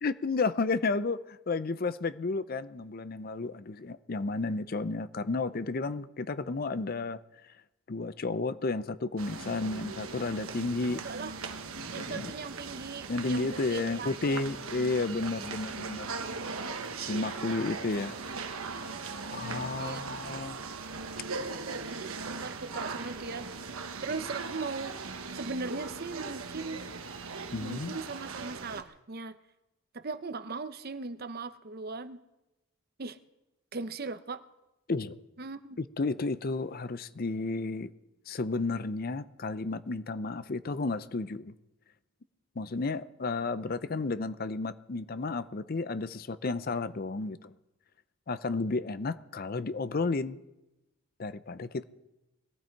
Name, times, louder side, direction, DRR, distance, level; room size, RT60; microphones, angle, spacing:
voice 1, 0.0-7.5 7.9-11.0 11.9-12.3 13.1-16.1 17.0-18.2 19.3-20.6 27.5-28.0 34.9-35.1 35.8-37.9 38.3-41.5 42.6-47.5 48.3-50.4 51.2-51.8, left 3 dB, 40° left, 0.5 m, -32 dB
sound 1, 9.2-28.8, right 4 dB, 75° right, 1.3 m, -39 dB
voice 2, 10.9-11.4 11.9-14.4 19.7-20.2 21.7-23.5 24.0-26.8 27.6-29.4 29.9-32.2 33.0-33.2 33.7-34.4 35.4-35.8, right 4 dB, 45° right, 0.7 m, -39 dB
21.0 x 15.0 x 4.6 m
head